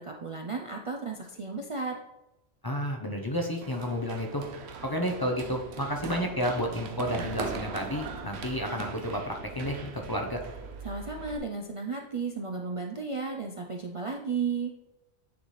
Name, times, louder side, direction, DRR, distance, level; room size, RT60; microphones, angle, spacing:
voice 1, 0.0-2.0 10.8-14.7, right 4 dB, 45° right, 1 dB, 0.4 m, -34 dB
voice 2, 2.6-4.4 4.8-10.4, equal, 25° left, 2 dB, 0.6 m, -31 dB
Run, 3.6-11.4, right 5 dB, 90° right, 0.9 m, -40 dB
9.3 x 4.1 x 3.2 m, 0.99 s
omnidirectional pair, 1.1 m